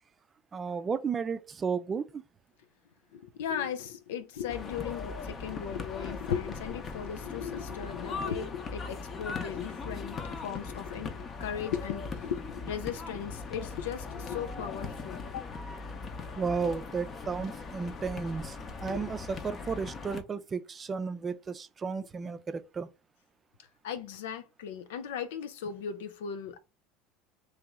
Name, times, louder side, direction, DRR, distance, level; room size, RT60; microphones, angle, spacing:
voice 1, 0.5-2.2 16.4-22.9, right 5 dB, 30° right, 0.4 m, -33 dB
voice 2, 3.1-15.5 16.6-16.7 18.9-19.1 23.8-26.6, left 8 dB, 85° left, 0.4 m, -37 dB
sound 1, 4.5-20.2, left 4 dB, 35° left, 0.7 m, -40 dB
3.1 x 2.9 x 3.5 m
supercardioid pair, 100°, 0 cm